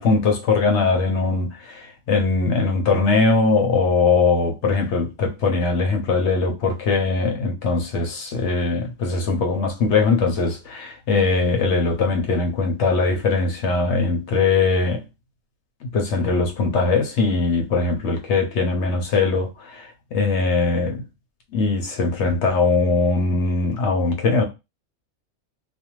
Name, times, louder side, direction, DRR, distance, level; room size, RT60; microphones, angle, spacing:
voice 1, 0.0-15.0 15.9-21.0 21.5-24.4, left 4 dB, 60° left, 0.8 m, -21 dB
2.5 x 2.2 x 2.9 m
omnidirectional pair, 1.6 m